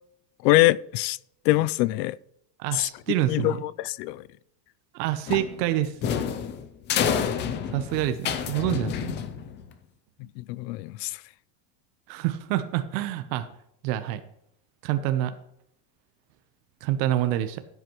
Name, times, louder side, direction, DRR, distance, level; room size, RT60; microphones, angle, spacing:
voice 1, 0.4-1.2 1.5-2.2 2.7-2.9 3.3-4.2 7.5-7.6 10.4-11.2, left 18 dB, 75° left, 0.6 m, -24 dB
voice 2, 2.6-3.6 4.9-5.9 7.7-9.1 12.1-13.5 13.8-14.2 14.8-15.3 16.8-17.6, right 13 dB, 80° right, 1.0 m, -27 dB
sound 1, 5.3-9.7, left 8 dB, 25° left, 0.4 m, -29 dB
15.0 x 8.1 x 3.1 m
cardioid pair, 165°, 49 cm